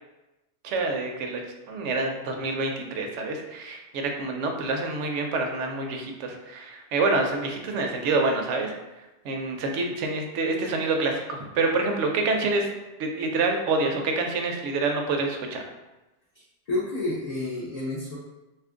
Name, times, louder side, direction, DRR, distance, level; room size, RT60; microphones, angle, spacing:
voice 1, 0.6-1.4 1.7-8.7 9.2-12.7 13.0-15.6, right 3 dB, 75° right, 3 dB, 0.9 m, -27 dB
voice 2, 16.3-18.2, left 2 dB, 45° left, -6 dB, 0.5 m, -30 dB
2.7 x 2.5 x 3.6 m, 1.0 s
omnidirectional pair, 1.2 m